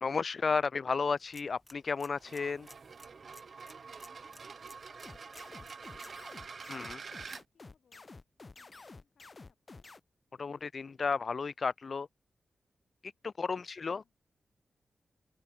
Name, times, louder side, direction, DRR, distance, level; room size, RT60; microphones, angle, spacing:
voice 1, 0.0-2.7 6.7-7.0 10.4-12.1 13.0-14.0, left 5 dB, 50° left, 0.3 m, -33 dB
sound 1, 1.1-6.2, left 1 dB, 10° left, 1.2 m, -59 dB
sound 2, 2.1-7.4, right 5 dB, 55° right, 1.0 m, -47 dB
voice 2, 4.4-6.2 6.9-8.1 8.5-9.9 13.5-14.1, left 6 dB, 75° left, 5.6 m, -73 dB
sound 3, 5.0-10.0, left 3 dB, 35° left, 3.1 m, -51 dB
open air
wide cardioid pair, 100°, 0 cm